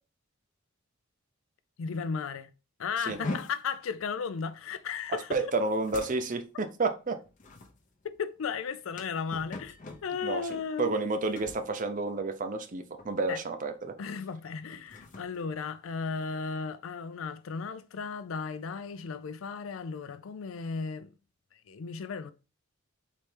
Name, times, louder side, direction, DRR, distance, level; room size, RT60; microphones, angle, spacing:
voice 1, 1.8-2.5 2.8-5.4 8.0-9.8 10.0-10.9 13.3-13.4 14.0-21.1 21.7-22.3, left 5 dB, 75° left, 0.4 m, -35 dB
sound 1, 3.1-12.7 13.0-13.4 13.8-14.0 14.6-16.5, left 2 dB, 40° left, 0.7 m, -44 dB
voice 2, 5.3-7.2 10.2-13.9, right 3 dB, 40° right, 0.5 m, -30 dB
4.2 x 3.3 x 3.3 m
head